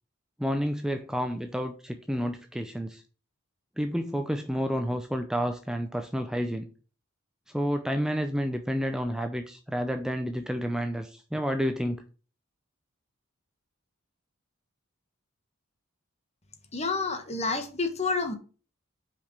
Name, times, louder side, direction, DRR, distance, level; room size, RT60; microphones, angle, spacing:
voice 1, 0.4-3.0 3.8-6.7 7.5-12.0, equal, 5° right, 0.5 m, -30 dB
voice 2, 16.7-18.4, left 3 dB, 30° left, 1.2 m, -29 dB
5.9 x 5.1 x 6.0 m
head